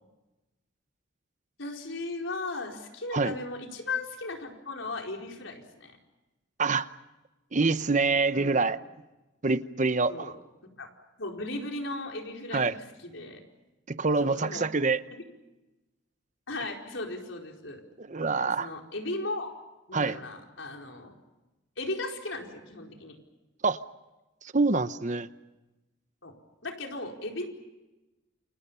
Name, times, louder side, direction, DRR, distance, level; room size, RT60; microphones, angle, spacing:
voice 1, 1.6-6.0 8.3-8.7 10.1-10.4 10.8-10.9 11.2-13.4 14.2-14.7 15.1-15.2 16.5-17.8 18.4-19.5 19.9-21.1 21.8-23.2 26.2-26.3 26.6-27.5, left 2 dB, 85° left, 2 dB, 4.6 m, -36 dB
voice 2, 7.5-8.8 9.4-10.4 12.5-12.7 13.9-15.0 18.0-18.7 19.9-20.2 23.6-23.8 24.5-25.3, right 3 dB, 40° right, 13 dB, 0.8 m, -26 dB
29.0 x 27.0 x 5.6 m, 1.1 s
head